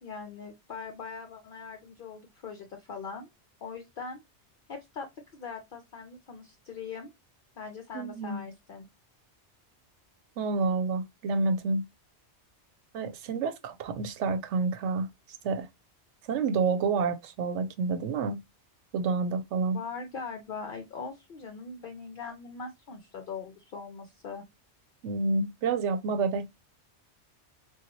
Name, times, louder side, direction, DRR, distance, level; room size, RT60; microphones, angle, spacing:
voice 1, 0.0-3.3 3.6-4.2 4.7-7.1 7.6-8.9 19.6-24.4, left 5 dB, 55° left, 0.7 m, -41 dB
voice 2, 7.9-8.5 10.4-11.8 12.9-15.1 15.4-15.7 16.3-18.4 18.9-19.8 25.0-26.5, right 4 dB, 90° right, 0.9 m, -29 dB
3.9 x 2.3 x 2.9 m
omnidirectional pair, 1.2 m